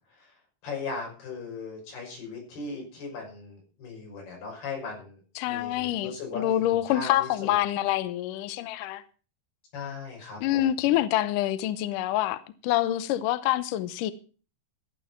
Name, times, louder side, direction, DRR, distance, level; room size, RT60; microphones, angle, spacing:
voice 1, 0.6-5.2 5.5-6.6 6.9-7.5 9.7-10.9, left 4 dB, 65° left, 7.8 m, -38 dB
voice 2, 5.4-9.0 10.4-14.1, left 13 dB, 85° left, 1.9 m, -26 dB
14.5 x 8.9 x 5.9 m
omnidirectional pair, 4.9 m